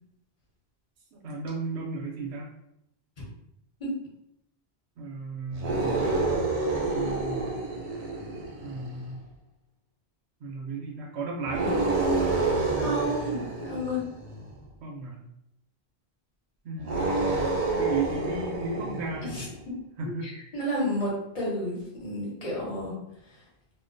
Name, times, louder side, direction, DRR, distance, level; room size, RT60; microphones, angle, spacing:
voice 1, 1.1-2.5 5.0-6.5 6.7-7.5 8.6-9.2 10.4-11.9 14.8-15.2 16.6-19.4 20.0-20.3, right 3 dB, 90° right, -1 dB, 0.9 m, -35 dB
sound 1, 5.5-9.1 11.4-14.6 16.8-19.5, right 3 dB, 55° right, 0.4 m, -28 dB
voice 2, 12.8-14.0 19.3-19.5 20.2-22.9, equal, 40° left, -4 dB, 0.9 m, -31 dB
2.3 x 2.2 x 2.5 m, 0.79 s
omnidirectional pair, 1.1 m